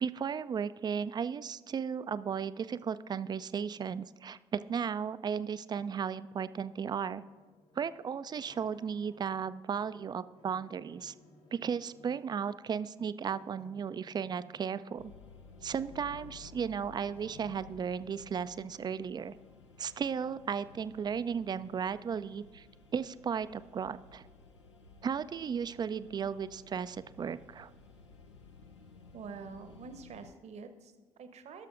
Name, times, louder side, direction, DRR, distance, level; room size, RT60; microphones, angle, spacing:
voice 1, 0.0-7.2 7.8-11.1 11.5-15.1 15.6-19.3 19.8-22.7 22.9-24.2 25.0-27.7, right 7 dB, 30° right, 15 dB, 0.4 m, -35 dB
sound 1, 6.6-9.5 9.7-12.4 13.2-14.8 15.3-17.8, left 2 dB, 60° left, 2.9 m, -60 dB
sound 2, 15.0-30.3, left 4 dB, 85° left, 0.6 m, -55 dB
voice 2, 29.1-31.7, right 5 dB, 50° right, 8 dB, 0.9 m, -47 dB
19.0 x 6.5 x 2.5 m, 1.3 s
figure-of-eight pair, 45°, 15 cm